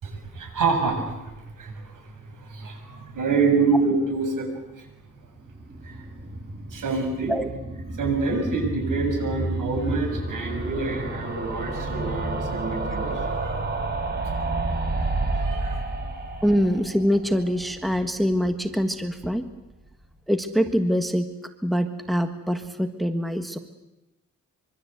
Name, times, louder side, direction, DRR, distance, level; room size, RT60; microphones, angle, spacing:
voice 1, 0.0-4.5 4.7-4.9 5.8-6.1 6.7-7.3 8.0-13.6 15.3-15.8, right 4 dB, 80° right, 3 dB, 7.5 m, -27 dB
sound 1, 5.5-18.5 18.8-18.9 19.1-19.2 19.4-19.5, right 2 dB, 30° right, 4.9 m, -30 dB
voice 2, 16.4-19.5 20.3-21.3 21.6-23.6, equal, ahead, 7 dB, 1.5 m, -24 dB
25.0 x 24.5 x 8.1 m, 0.97 s
wide cardioid pair, 135°, 32 cm